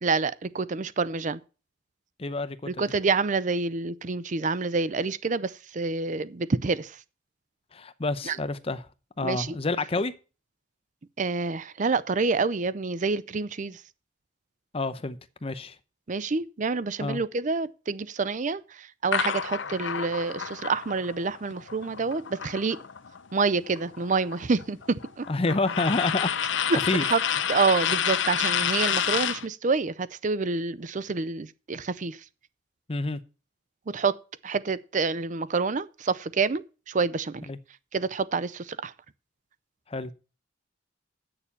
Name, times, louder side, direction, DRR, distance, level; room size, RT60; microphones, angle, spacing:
voice 1, 0.0-1.4 2.7-7.0 8.3-8.4 9.2-9.6 11.2-13.8 16.1-22.8 23.3-25.3 26.7-27.2 27.5-32.2 33.9-34.2 34.4-37.5 37.9-38.9, right 4 dB, 40° right, 0.5 m, -27 dB
voice 2, 2.2-2.6 7.7-8.8 9.2-10.1 14.7-15.8 17.0-17.2 25.3-26.3 26.8-27.1 32.9-33.2 37.5-37.6 39.9-40.1, left 3 dB, 30° left, 0.7 m, -28 dB
sound 1, 19.1-23.2 23.5-29.5, left 8 dB, 75° left, 0.8 m, -29 dB
8.7 x 6.8 x 7.0 m
head